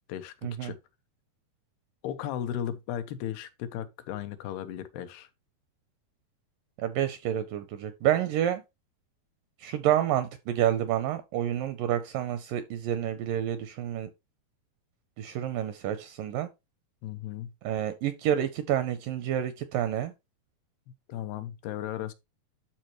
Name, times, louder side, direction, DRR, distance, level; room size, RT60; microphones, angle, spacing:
voice 1, 0.4-0.7 6.8-8.6 9.6-14.1 15.2-16.5 17.6-20.1, right 11 dB, 80° right, 2.0 m, -29 dB
voice 2, 2.0-5.3 17.0-17.5 21.1-22.1, left 10 dB, 85° left, 2.8 m, -35 dB
12.0 x 4.3 x 3.0 m
omnidirectional pair, 4.5 m